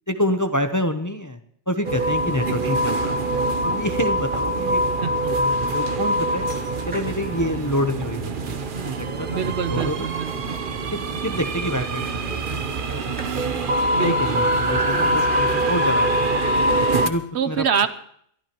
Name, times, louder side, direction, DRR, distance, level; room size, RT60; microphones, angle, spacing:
voice 1, 0.1-1.4 1.7-3.1 3.6-4.8 5.3-6.5 6.9-8.9 9.2-10.1 10.9-13.2 14.0-16.6 17.0-17.7, left 1 dB, 20° left, 7 dB, 0.7 m, -27 dB
sound 1, 1.8-17.1, right 1 dB, 50° right, 1.0 m, -24 dB
sound 2, 6.4-16.1, right 1 dB, 10° right, 2.2 m, -43 dB
voice 2, 9.3-10.6 13.9-14.4 17.3-17.9, right 7 dB, 70° right, 12 dB, 1.1 m, -25 dB
23.0 x 13.5 x 3.0 m, 0.66 s
omnidirectional pair, 1.2 m